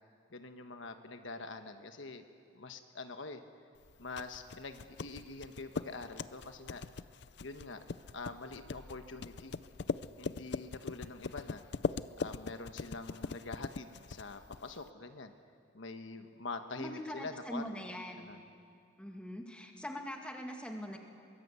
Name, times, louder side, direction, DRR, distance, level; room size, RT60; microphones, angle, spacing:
voice 1, 0.3-2.2 2.5-3.4 4.0-6.8 7.4-7.8 8.1-9.6 10.2-11.6 12.2-15.3 15.7-17.7 18.2-18.4, left 3 dB, 75° left, 7 dB, 1.2 m, -45 dB
sound 1, 3.8-14.9, left 4 dB, 55° left, 0.5 m, -41 dB
voice 2, 16.8-18.3 19.0-21.0, equal, 5° left, 2 dB, 2.0 m, -42 dB
23.0 x 21.5 x 8.2 m, 2.3 s
head